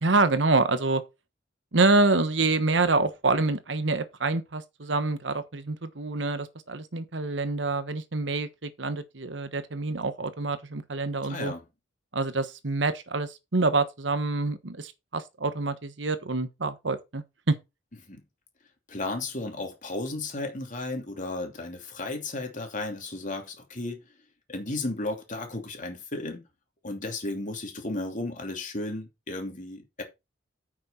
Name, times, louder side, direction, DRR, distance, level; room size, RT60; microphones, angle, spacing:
voice 1, 0.0-1.0 1.7-11.5 12.1-17.6, right 3 dB, 85° right, 1.2 m, -26 dB
voice 2, 11.3-11.6 18.1-18.2 18.9-24.0 24.5-26.4 26.8-30.0, left 2 dB, 45° left, 2.8 m, -34 dB
9.0 x 6.3 x 4.3 m
head